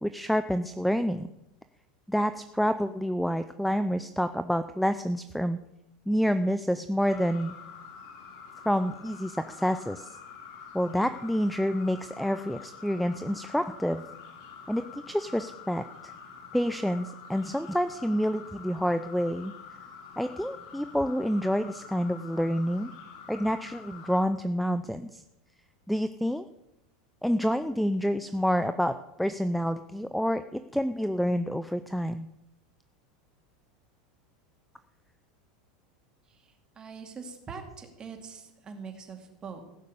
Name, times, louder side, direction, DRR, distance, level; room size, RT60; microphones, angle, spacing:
voice 1, 0.0-1.3 2.1-5.6 6.1-7.5 8.6-10.2 10.7-14.0 14.7-16.1 16.5-19.5 20.2-22.9 23.3-25.2 25.9-26.4 27.2-32.3, equal, ahead, 12 dB, 0.4 m, -28 dB
sound 1, 7.0-24.3, left 6 dB, 65° left, 2.9 m, -47 dB
voice 2, 36.8-39.6, right 5 dB, 20° right, 4 dB, 2.4 m, -43 dB
16.0 x 6.5 x 8.5 m, 0.88 s
supercardioid pair, 140°, 4 cm